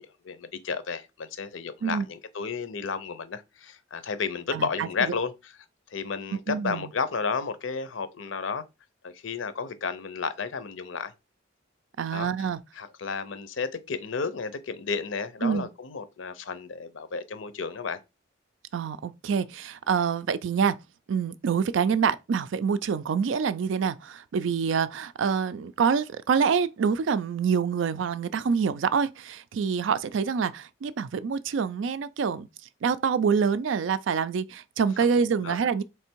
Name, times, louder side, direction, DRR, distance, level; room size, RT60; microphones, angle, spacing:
voice 1, 0.0-5.3 5.9-8.6 9.0-11.1 12.1-12.3 12.8-18.0 35.4-35.6, left 5 dB, 75° left, 0.6 m, -32 dB
voice 2, 4.5-4.9 6.5-6.9 12.0-12.6 15.4-15.7 18.7-20.8 21.1-32.5 32.8-35.8, right 6 dB, 70° right, 0.4 m, -26 dB
3.5 x 3.3 x 4.5 m
head